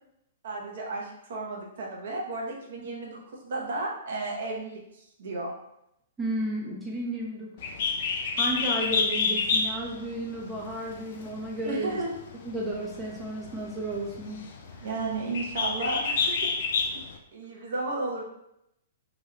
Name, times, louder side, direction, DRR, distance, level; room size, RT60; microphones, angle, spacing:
voice 1, 0.4-5.5 11.7-12.2 14.8-17.0 17.3-18.2, right 2 dB, 55° right, -2 dB, 0.8 m, -33 dB
voice 2, 6.2-7.5 8.4-12.0 12.4-14.4 14.8-14.9, right 1 dB, 10° right, -4 dB, 0.6 m, -33 dB
Bird, 7.6-17.2, left 5 dB, 50° left, 0.4 m, -30 dB
2.9 x 2.7 x 3.2 m, 0.81 s
figure-of-eight pair, 110°, 0 cm